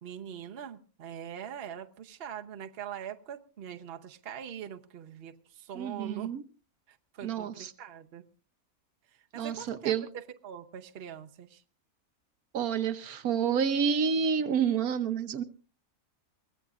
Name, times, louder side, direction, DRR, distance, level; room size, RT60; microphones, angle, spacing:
voice 1, 0.0-6.3 6.9-8.2 9.3-11.6, right 9 dB, 45° right, 6 dB, 1.0 m, -43 dB
voice 2, 5.7-6.4 7.2-7.7 9.3-10.1 12.5-15.4, right 7 dB, 80° right, 10 dB, 1.4 m, -29 dB
23.0 x 16.5 x 2.4 m, 0.38 s
omnidirectional pair, 1.5 m